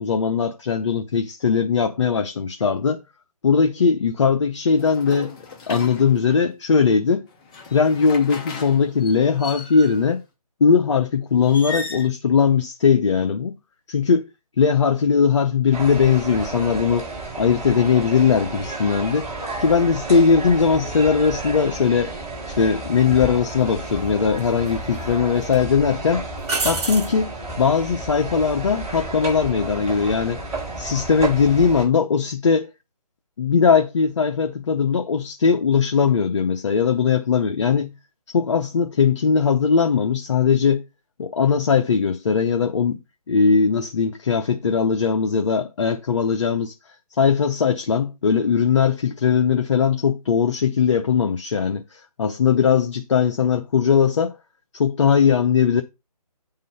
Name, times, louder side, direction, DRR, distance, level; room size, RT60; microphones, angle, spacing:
voice 1, 0.0-3.0 3.4-5.4 5.7-7.3 7.7-10.2 10.6-13.5 13.9-14.3 14.6-17.1 17.4-19.3 19.6-22.1 22.5-26.3 26.6-30.4 30.8-32.7 33.4-37.9 38.3-40.8 41.2-43.0 43.3-46.7 47.2-54.3 54.7-55.8, left 6 dB, 45° left, 0.8 m, -19 dB
sound 1, 4.8-6.5 7.3-10.1 11.4-12.1, left 3 dB, 10° left, 0.5 m, -36 dB
sound 2, 15.7-31.9, right 2 dB, 10° right, 5.9 m, -32 dB
sound 3, 23.1-23.3 24.4-25.0 25.4-25.6 26.4-27.2 30.3-30.6, right 3 dB, 40° right, 2.2 m, -27 dB
9.3 x 3.8 x 5.5 m
figure-of-eight pair, 155°, 20 cm